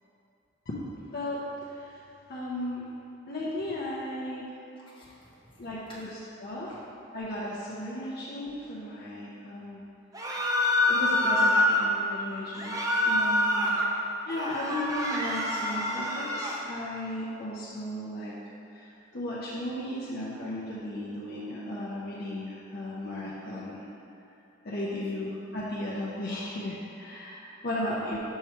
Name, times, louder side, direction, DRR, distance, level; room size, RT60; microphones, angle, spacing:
voice 1, 1.1-2.0 2.3-2.9 3.3-4.5 5.6-6.1 6.4-6.8 7.1-9.8 10.9-12.8 13.0-13.7 14.3-18.3 18.7-18.9 19.1-23.9 24.6-28.2, left 1 dB, 55° left, -6 dB, 0.7 m, -35 dB
voice 2, 4.8-6.1 6.6-6.8 13.8-14.2 27.6-28.0, left 1 dB, 30° left, -7 dB, 1.2 m, -53 dB
sound 1, 10.1-11.9 12.5-13.9 14.3-16.6, left 1 dB, 20° right, 0.6 m, -26 dB
5.6 x 3.1 x 5.6 m, 2.8 s
head